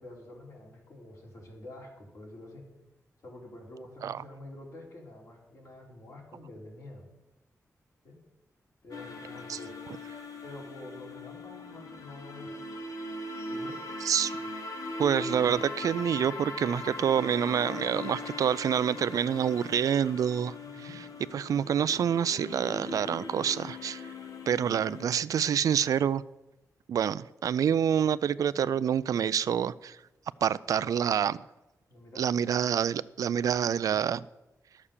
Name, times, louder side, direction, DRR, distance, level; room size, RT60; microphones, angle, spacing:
voice 1, 0.0-2.6 3.2-7.1 8.0-8.2 8.8-9.8 10.4-12.6 13.5-13.8 20.6-21.0 31.9-32.2, left 1 dB, 65° left, 3.6 m, -47 dB
sound 1, 8.9-25.1, left 2 dB, 90° left, 1.2 m, -40 dB
voice 2, 15.0-20.5 21.3-24.1 24.5-26.2 26.9-30.0 30.4-31.4 32.2-34.2, right 8 dB, 85° right, 0.4 m, -27 dB
12.5 x 7.2 x 6.7 m
wide cardioid pair, 145°, 6 cm